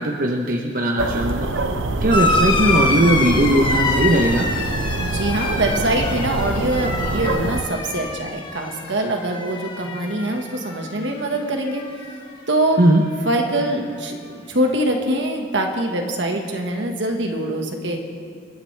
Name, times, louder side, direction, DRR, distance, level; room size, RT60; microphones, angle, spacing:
voice 1, 0.0-1.5 2.0-4.5 12.8-13.0, right 1 dB, 50° right, 1 dB, 1.0 m, -18 dB
sound 1, 1.0-7.6, right 2 dB, 85° right, 0.8 m, -25 dB
sound 2, 2.1-11.1 11.4-12.2 13.3-13.4, left 3 dB, 25° left, 1.3 m, -26 dB
voice 2, 5.0-11.8 12.5-12.8 13.2-18.0, right 1 dB, 70° right, 3 dB, 1.6 m, -23 dB
28.5 x 9.7 x 3.4 m, 2.3 s
head